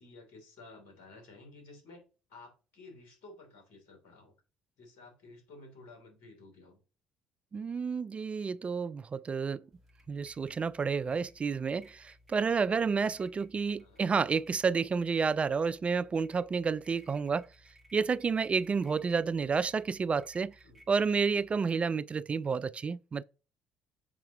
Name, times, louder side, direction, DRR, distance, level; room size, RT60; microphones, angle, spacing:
voice 1, 0.0-2.0 2.3-4.3 4.8-6.8 13.7-14.0 20.6-20.8, left 2 dB, 70° left, 3.3 m, -53 dB
voice 2, 7.5-9.6 10.1-17.5 17.9-20.5 20.9-23.2, right 5 dB, 35° right, 0.4 m, -30 dB
sound 1, 9.7-21.6, equal, 5° left, 4.0 m, -61 dB
7.2 x 5.6 x 3.0 m
hypercardioid pair, 55°, 4 cm